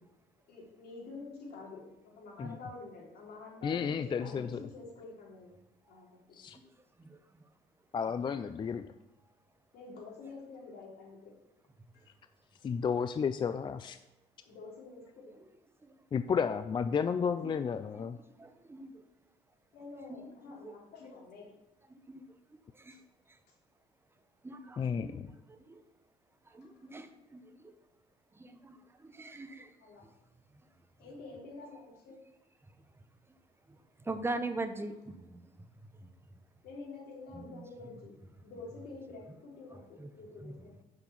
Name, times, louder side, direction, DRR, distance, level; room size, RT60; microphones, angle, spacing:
voice 1, 0.5-5.5 5.9-6.4 9.7-11.3 11.9-12.1 14.4-15.4 19.7-21.4 22.9-23.0 26.5-26.6 29.8-30.0 31.0-32.2 34.9-35.0 36.6-38.2 38.4-40.8, left 3 dB, 70° left, -2 dB, 3.3 m, -48 dB
voice 2, 3.6-4.6 6.4-6.6 7.9-8.9 12.6-14.0 16.1-18.2 24.8-25.3, left 6 dB, 30° left, 10 dB, 0.4 m, -32 dB
voice 3, 18.4-19.0 20.1-20.2 20.6-20.7 22.1-22.2 22.8-23.0 24.4-25.2 25.5-25.8 26.5-27.7 28.4-28.8 29.0-29.7 34.1-35.4 36.0-36.1 40.0-40.1 40.4-40.5, right 2 dB, 15° right, 9 dB, 0.9 m, -41 dB
6.1 x 5.9 x 7.1 m, 0.96 s
cardioid pair, 110°, 17 cm